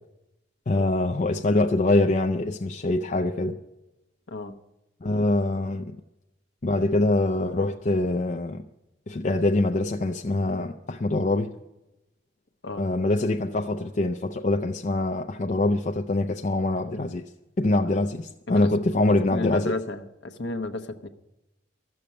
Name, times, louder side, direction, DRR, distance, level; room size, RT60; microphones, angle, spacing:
voice 1, 0.7-3.6 5.0-6.0 6.6-8.6 9.1-11.5 12.8-17.3 17.6-19.7, left 2 dB, 40° left, 0.5 m, -24 dB
voice 2, 12.6-13.0 18.5-18.7 19.3-21.1, left 2 dB, 65° left, 1.0 m, -32 dB
14.0 x 6.9 x 8.6 m
head